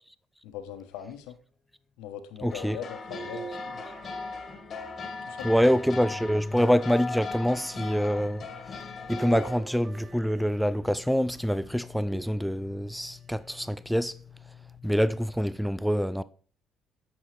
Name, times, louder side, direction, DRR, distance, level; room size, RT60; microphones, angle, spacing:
voice 1, 0.4-1.4 2.0-3.8 5.2-5.6, left 9 dB, 80° left, 1.0 m, -41 dB
sound 1, 1.7-1.8 2.0-2.1 3.6-15.7, left 3 dB, 25° left, 1.1 m, -47 dB
voice 2, 2.4-2.8 5.4-8.5 9.1-14.1 14.8-16.2, equal, ahead, 0.4 m, -26 dB
sound 2, 2.5-9.6, left 4 dB, 45° left, 1.5 m, -38 dB
sound 3, 3.1-5.4 6.1-7.1 9.1-11.2 12.1-13.0 13.6-13.7 15.1-15.2, right 5 dB, 40° right, 0.8 m, -43 dB
9.1 x 6.3 x 3.3 m
supercardioid pair, 70°, 0 cm